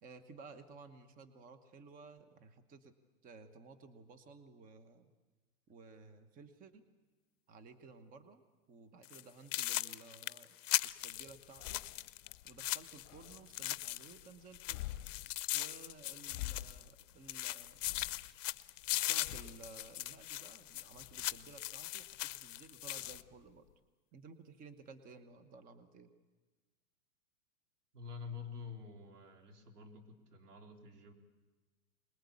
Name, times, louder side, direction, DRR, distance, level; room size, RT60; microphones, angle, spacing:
voice 1, 0.0-2.9 3.2-5.1 5.7-6.9 7.5-8.4 8.7-10.5 10.8-11.8 12.4-14.8 15.5-17.8 18.9-23.7 24.1-26.1, right 4 dB, 20° right, 8 dB, 1.1 m, -56 dB
sound 1, 9.0-9.2 9.5-14.3 14.5-17.0 17.3-23.2, left 15 dB, 55° left, 0.7 m, -39 dB
sound 2, 10.7-23.8, left 15 dB, 40° left, 1.4 m, -51 dB
voice 2, 27.9-31.1, left 5 dB, 90° right, 3 dB, 3.9 m, -48 dB
24.5 x 20.5 x 8.5 m, 1.2 s
hypercardioid pair, 140°, 45 cm